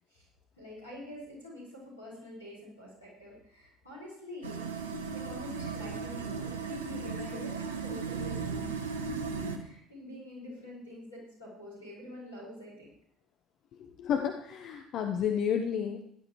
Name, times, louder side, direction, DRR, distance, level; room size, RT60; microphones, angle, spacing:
voice 1, 0.6-4.7 5.1-8.8 9.1-9.3 9.6-12.9, left 1 dB, 85° left, -5 dB, 5.9 m, -46 dB
sound 1, 4.4-9.6, right 5 dB, 80° right, 1.2 m, -36 dB
voice 2, 14.0-16.0, left 8 dB, 50° left, 5 dB, 0.9 m, -31 dB
17.0 x 11.5 x 3.1 m, 0.73 s
figure-of-eight pair, 60°, 0 cm